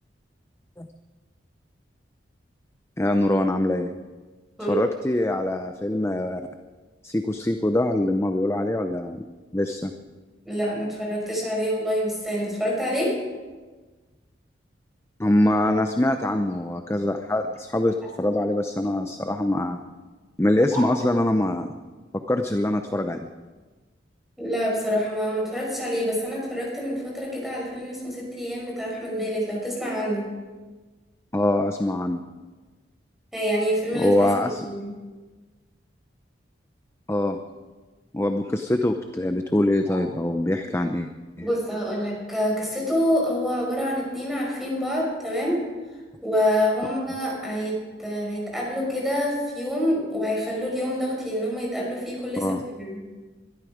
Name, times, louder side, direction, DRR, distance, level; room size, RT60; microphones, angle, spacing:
voice 1, 3.0-3.9 4.7-6.4 7.0-9.2 9.5-9.9 15.2-19.8 20.4-21.7 22.3-23.3 31.3-32.2 33.9-34.7 37.1-37.4 38.1-41.1 41.4-41.5 52.4-52.6, left 1 dB, 15° left, 6 dB, 0.6 m, -23 dB
voice 2, 10.4-13.2 20.7-20.8 24.4-30.3 33.3-34.3 34.6-34.9 39.9-40.0 41.4-45.6 46.2-52.5 52.8-53.1, equal, ahead, -3 dB, 5.8 m, -27 dB
22.0 x 13.0 x 5.0 m, 1.3 s
head